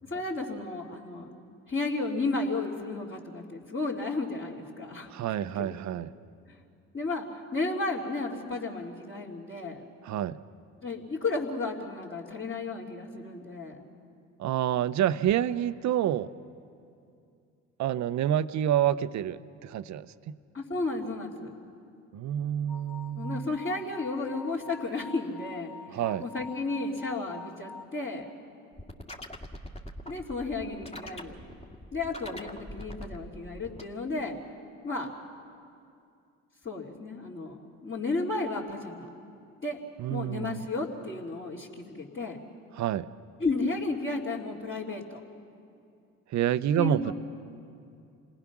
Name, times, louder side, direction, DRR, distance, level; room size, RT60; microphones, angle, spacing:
voice 1, 0.0-1.3 1.7-5.1 5.6-5.7 6.5-6.6 6.9-7.2 7.5-9.8 10.8-13.8 20.5-21.5 23.1-28.2 30.0-31.4 31.9-34.4 34.8-35.1 36.6-39.1 39.6-39.8 40.1-42.4 43.4-45.2 46.8-47.1, left 3 dB, 35° left, -8 dB, 3.0 m, -33 dB
voice 2, 5.1-6.1 10.0-10.4 14.4-16.3 17.8-20.4 22.1-23.5 25.9-26.2 40.0-40.6 42.7-43.1 46.3-47.1, right 11 dB, 55° right, 15 dB, 0.7 m, -28 dB
sound 1, 22.7-27.8, left 5 dB, 60° left, 2.8 m, -46 dB
sound 2, 28.7-33.8, equal, 15° left, 2.0 m, -43 dB
28.0 x 19.0 x 6.1 m, 2.5 s
hypercardioid pair, 65°, 35 cm